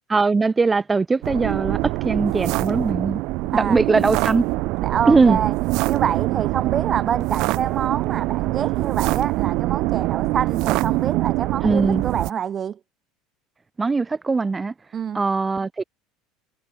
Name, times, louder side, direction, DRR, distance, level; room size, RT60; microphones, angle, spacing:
voice 1, 0.1-1.8 2.0-3.2 3.5-4.5 5.1-5.4 11.6-12.0 13.8-14.7 15.1-15.8, right 4 dB, 20° right, 7.2 m, -20 dB
sound 1, 1.2-12.3, right 21 dB, 65° right, 3.3 m, -24 dB
voice 2, 4.8-5.5 5.9-12.8 14.9-15.2, right 8 dB, 35° right, 2.2 m, -26 dB
supercardioid pair, 100°, 0 cm